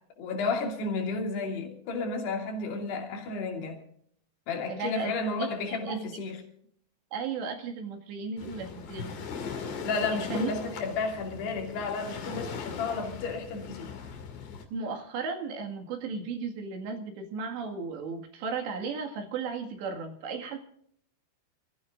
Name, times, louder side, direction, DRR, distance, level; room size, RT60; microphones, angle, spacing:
voice 1, 0.2-3.8 4.5-6.4 9.8-13.9, left 3 dB, 70° left, 4.6 m, -32 dB
voice 2, 4.7-5.1 5.4-6.2 7.1-9.3 10.0-10.5 14.7-20.6, right 4 dB, 85° right, 4.2 m, -35 dB
Waves surf, 8.4-14.6, left 6 dB, 85° left, 4.8 m, -39 dB
27.0 x 15.5 x 2.6 m
omnidirectional pair, 4.9 m